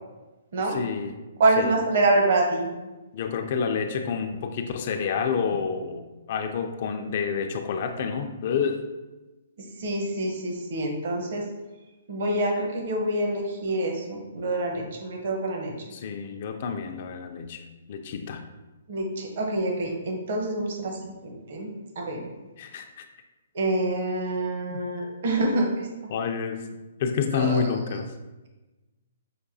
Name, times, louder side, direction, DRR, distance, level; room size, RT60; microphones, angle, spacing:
voice 1, 0.7-1.2 1.6-1.8 3.1-8.8 15.9-17.6 17.9-18.4 22.6-23.0 24.7-24.8 26.1-26.6 27.0-28.1, left 6 dB, 45° left, 6 dB, 0.3 m, -29 dB
voice 2, 1.4-2.7 9.8-11.4 12.1-15.7 18.9-22.3 23.5-25.9 27.3-27.7, right 2 dB, 55° right, 2 dB, 0.8 m, -26 dB
5.8 x 2.3 x 2.6 m, 1.1 s
hypercardioid pair, 155°, 0 cm